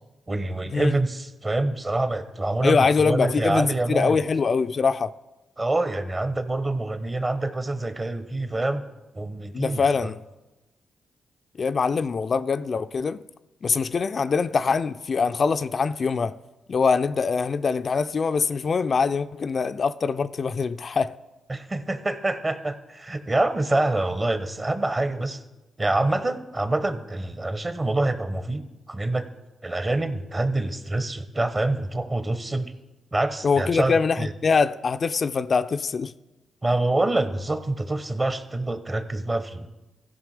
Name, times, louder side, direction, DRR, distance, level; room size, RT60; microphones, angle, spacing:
voice 1, 0.3-4.2 5.6-8.8 9.1-10.1 21.5-25.4 25.8-28.6 28.9-29.3 29.6-32.7 33.1-34.3 36.6-39.7, right 2 dB, 30° right, 1.0 m, -26 dB
voice 2, 2.6-5.1 9.5-10.2 11.6-13.2 13.6-16.3 16.7-21.2 33.4-36.1, left 5 dB, 50° left, 0.3 m, -23 dB
15.5 x 5.3 x 5.0 m
hypercardioid pair, 40°, 0 cm